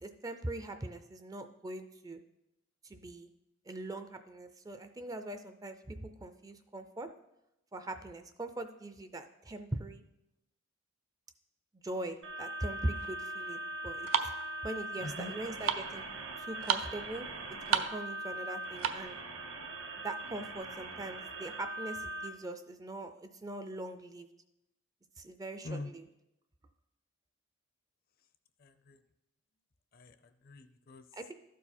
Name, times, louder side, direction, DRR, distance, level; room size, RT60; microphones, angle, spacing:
voice 1, 0.0-2.2 2.8-3.3 3.7-7.1 7.7-10.0 11.7-14.1 14.6-16.0 16.4-17.3 17.7-19.1 20.0-24.3 25.2-26.0 31.1-31.3, right 1 dB, 15° right, 8 dB, 0.4 m, -41 dB
sound 1, 12.2-22.3, right 2 dB, 65° right, 1.0 m, -41 dB
sound 2, 12.9-19.2, right 8 dB, 85° right, 0.5 m, -35 dB
voice 2, 15.0-15.3 25.6-25.9 28.6-29.0 29.9-31.1, left 2 dB, 45° left, 10 dB, 0.5 m, -44 dB
12.5 x 4.6 x 4.3 m, 0.89 s
head